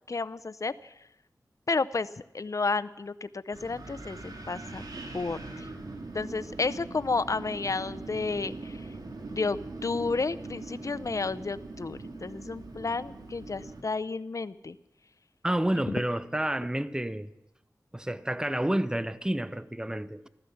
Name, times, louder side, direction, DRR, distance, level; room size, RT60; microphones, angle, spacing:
voice 1, 0.1-0.7 1.7-2.1 2.3-4.8 5.1-5.7 6.1-8.8 9.3-14.8, left 4 dB, 55° left, 0.5 m, -31 dB
Wind, 3.5-13.8, right 2 dB, 85° right, 2.0 m, -41 dB
voice 2, 15.4-17.3 17.9-20.3, right 1 dB, 10° right, 0.7 m, -29 dB
15.0 x 13.5 x 7.0 m
wide cardioid pair, 50°, 7 cm